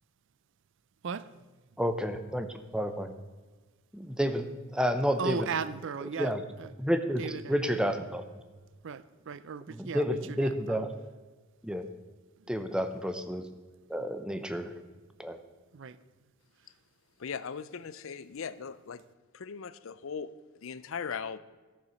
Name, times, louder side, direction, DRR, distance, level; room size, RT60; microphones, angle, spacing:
voice 1, 1.8-2.5 2.7-3.1 3.9-4.5 4.7-5.5 6.2-6.4 6.8-8.2 9.7-10.9 11.6-11.8 12.5-13.4 13.9-14.7 15.2-15.4, equal, 5° right, 8 dB, 0.7 m, -30 dB
voice 2, 5.2-6.7 7.2-7.5 8.8-10.8 15.7-16.0, right 6 dB, 60° right, 16 dB, 0.5 m, -37 dB
voice 3, 17.2-19.0 19.3-20.3 20.6-21.4, left 6 dB, 65° left, 15 dB, 0.5 m, -38 dB
13.5 x 6.9 x 6.3 m, 1.3 s
head